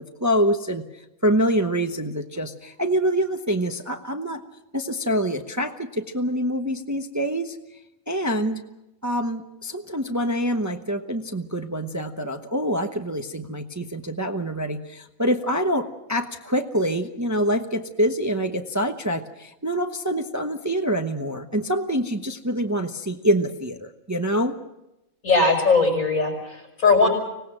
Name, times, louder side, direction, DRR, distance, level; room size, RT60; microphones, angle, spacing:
voice 1, 0.0-4.4 4.7-7.6 8.1-8.6 9.0-24.6, equal, 15° right, 5 dB, 0.9 m, -25 dB
voice 2, 25.2-27.1, left 3 dB, 70° left, 2 dB, 6.3 m, -19 dB
25.0 x 18.5 x 7.6 m, 0.92 s
omnidirectional pair, 1.4 m